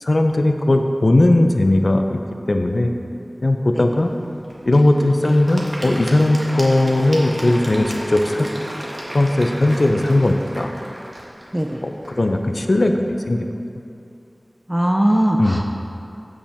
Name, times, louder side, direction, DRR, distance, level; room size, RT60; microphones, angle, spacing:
voice 1, 0.0-2.2 2.5-2.9 3.4-4.1 4.7-8.5 9.1-10.7 11.8-13.5 15.4-15.6, left 1 dB, 65° left, 5 dB, 0.6 m, -18 dB
Applause / Crowd, 4.0-13.1, equal, 40° right, 1.6 m, -34 dB
voice 2, 14.7-15.6, right 1 dB, 20° right, 2 dB, 0.5 m, -19 dB
15.5 x 5.2 x 3.5 m, 2.6 s
wide cardioid pair, 50°, 0 cm